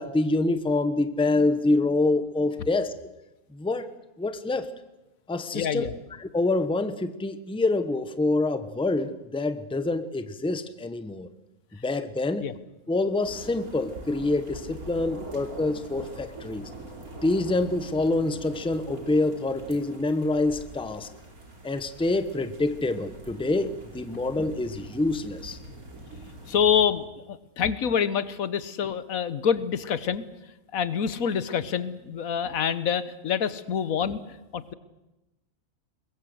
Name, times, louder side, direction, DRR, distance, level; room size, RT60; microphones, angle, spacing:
voice 1, 0.0-2.9 3.5-3.9 4.2-4.7 5.3-5.9 6.2-11.3 11.8-12.5 12.9-16.7 17.2-21.1 21.6-25.6, left 2 dB, 5° left, 10 dB, 0.8 m, -26 dB
voice 2, 5.5-5.9 12.4-12.5 26.5-30.2 30.7-34.2 34.5-34.7, left 7 dB, 75° left, 15 dB, 1.4 m, -26 dB
sound 1, 13.2-26.8, right 1 dB, 85° right, 3.7 m, -43 dB
22.5 x 20.0 x 7.9 m, 0.98 s
omnidirectional pair, 1.5 m